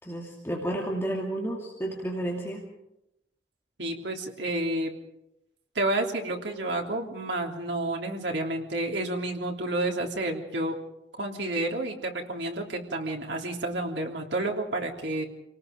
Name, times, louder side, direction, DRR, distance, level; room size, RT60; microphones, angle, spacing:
voice 1, 0.0-2.7, right 1 dB, 15° left, -2 dB, 2.5 m, -31 dB
voice 2, 3.8-4.9 5.7-10.8 11.2-15.2, right 2 dB, 80° right, 1 dB, 3.1 m, -30 dB
28.0 x 19.0 x 5.2 m, 0.86 s
head